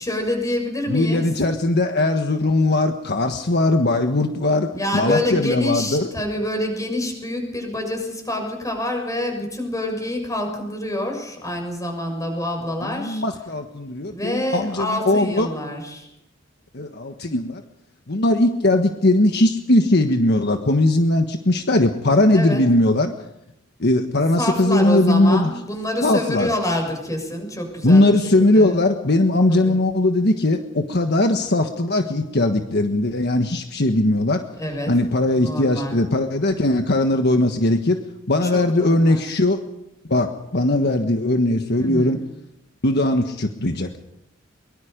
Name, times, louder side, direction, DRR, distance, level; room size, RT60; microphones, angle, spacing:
voice 1, 0.0-1.3 4.7-13.2 14.1-16.1 22.3-22.6 24.4-28.8 29.5-29.8 34.6-34.9 35.3-36.0 38.5-39.2 41.8-42.2, left 1 dB, 20° left, 3 dB, 6.6 m, -27 dB
voice 2, 0.9-6.1 12.8-15.5 16.7-17.6 18.1-23.1 23.8-25.5 26.0-26.5 27.8-34.4 34.9-38.0 38.3-39.6 40.1-42.2 42.8-43.9, left 2 dB, 60° left, 5 dB, 1.4 m, -19 dB
23.5 x 22.5 x 5.2 m, 0.81 s
head